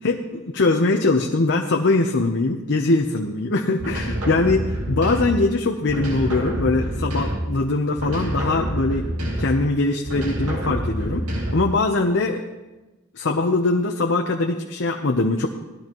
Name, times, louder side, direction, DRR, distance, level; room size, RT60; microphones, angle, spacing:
voice 1, 0.0-9.1 9.4-12.4 13.1-15.5, left 2 dB, 55° left, 2 dB, 0.8 m, -22 dB
sound 1, 3.8-5.5 5.9-7.6 8.0-9.7 10.1-11.8, equal, 75° right, 2.3 m, -27 dB
19.0 x 13.0 x 3.0 m, 1.1 s
head